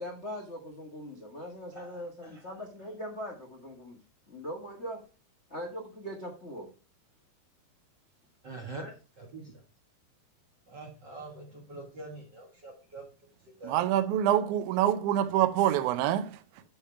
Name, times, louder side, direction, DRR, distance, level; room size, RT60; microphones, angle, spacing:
voice 1, 0.0-4.0 4.3-5.0 5.5-6.7, equal, 85° left, 0.6 m, -40 dB
voice 2, 1.7-2.3 8.4-9.6 10.7-13.0 13.5-13.9, right 3 dB, 60° right, 1.1 m, -45 dB
voice 3, 13.6-16.6, right 11 dB, 80° right, 1.7 m, -26 dB
10.5 x 3.6 x 5.6 m
omnidirectional pair, 4.3 m